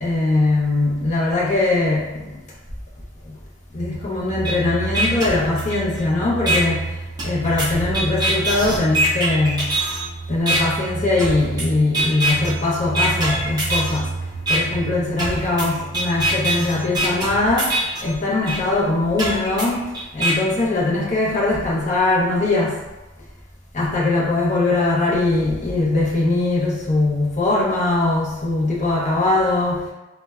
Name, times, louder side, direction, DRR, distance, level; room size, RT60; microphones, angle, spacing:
voice 1, 0.0-2.4 3.7-6.9 7.2-9.7 10.3-14.1 14.5-17.8 18.0-19.9 20.1-22.8 23.7-29.8, left 2 dB, 35° left, -5 dB, 0.6 m, -21 dB
sound 1, 3.7-17.1, right 3 dB, 75° left, 0.9 m, -31 dB
sound 2, 4.4-4.5 4.9-6.0 6.5-6.6 7.2-10.0 10.5-10.6 11.2-11.6 11.9-12.5 12.9-14.0 14.5-14.6 15.2-18.0 18.5-18.6 19.2-20.3, right 1 dB, 20° right, 0.5 m, -23 dB
3.1 x 2.1 x 2.3 m, 1.1 s
head